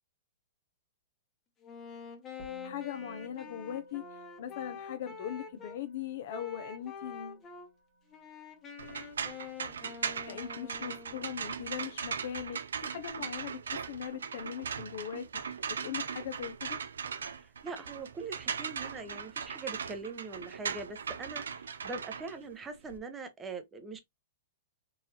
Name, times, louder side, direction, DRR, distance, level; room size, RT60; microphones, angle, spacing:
Wind instrument woodwind instrument, 1.6-5.8 6.3-7.7 8.1-11.3, left 6 dB, 25° left, 1.0 m, -46 dB
Musical instrument, 2.4-11.9, equal, 40° right, 1.2 m, -55 dB
voice 1, 2.6-4.0 4.4-7.4 10.3-13.6 13.9-16.8, left 9 dB, 60° left, 0.5 m, -40 dB
sound 1, 8.8-23.0, right 6 dB, 85° right, 0.5 m, -39 dB
voice 2, 17.3-24.0, right 3 dB, 15° right, 0.8 m, -42 dB
3.8 x 2.6 x 2.8 m
hypercardioid pair, 125°, 0 cm